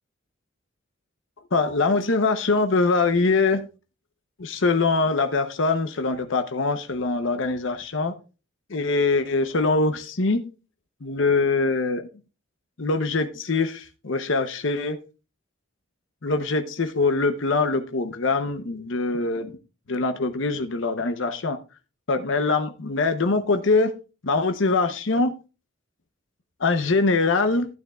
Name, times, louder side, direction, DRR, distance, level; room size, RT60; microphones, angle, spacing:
voice 1, 1.5-3.6 4.4-8.2 8.7-10.4 11.0-12.0 12.8-15.0 16.2-19.5 19.9-21.6 22.1-23.9 24.2-25.3 26.6-27.7, left 3 dB, 70° left, 7 dB, 0.8 m, -23 dB
12.0 x 9.1 x 2.4 m, 0.32 s
head